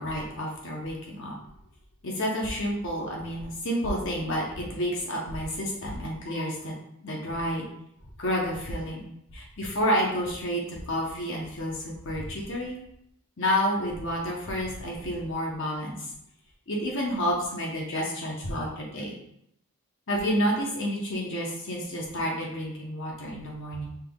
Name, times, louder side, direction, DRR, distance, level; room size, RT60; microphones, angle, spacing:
voice 1, 0.0-1.3 2.0-6.7 7.0-7.7 8.2-9.0 9.3-12.8 13.4-16.1 16.7-19.1 20.1-23.9, equal, 55° left, -2 dB, 0.8 m, -30 dB
5.7 x 3.4 x 2.3 m, 0.77 s
head